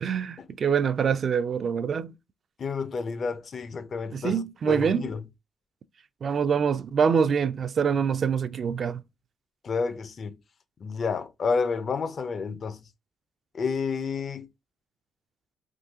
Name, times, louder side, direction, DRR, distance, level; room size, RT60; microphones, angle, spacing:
voice 1, 0.0-2.1 4.1-5.1 6.2-9.0, right 6 dB, 50° right, 0.3 m, -25 dB
voice 2, 2.6-5.2 9.6-10.4 10.8-12.8 13.5-14.5, left 5 dB, 50° left, 0.4 m, -30 dB
3.6 x 2.7 x 2.6 m
cardioid pair, 90°, 0 cm